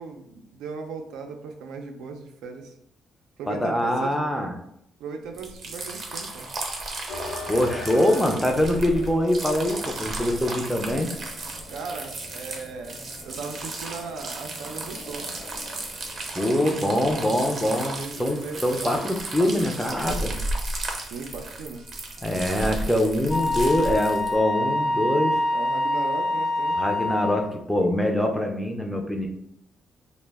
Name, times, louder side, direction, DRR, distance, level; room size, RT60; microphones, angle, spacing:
voice 1, 0.0-2.7 3.4-4.2 5.0-6.5 11.7-15.3 17.9-19.0 21.0-21.9 25.5-26.8, right 4 dB, 85° right, 4 dB, 0.4 m, -37 dB
voice 2, 3.5-4.5 7.5-11.1 16.3-20.3 22.2-25.4 26.8-29.3, left 1 dB, 5° left, 3 dB, 0.5 m, -24 dB
sound 1, 5.3-24.3, right 2 dB, 50° right, 0.6 m, -34 dB
sound 2, 7.1-25.7, left 3 dB, 85° left, 0.8 m, -44 dB
Wind instrument woodwind instrument, 23.3-27.5, left 1 dB, 50° left, 0.8 m, -25 dB
2.1 x 2.0 x 3.3 m, 0.75 s
cardioid pair, 90°, 0 cm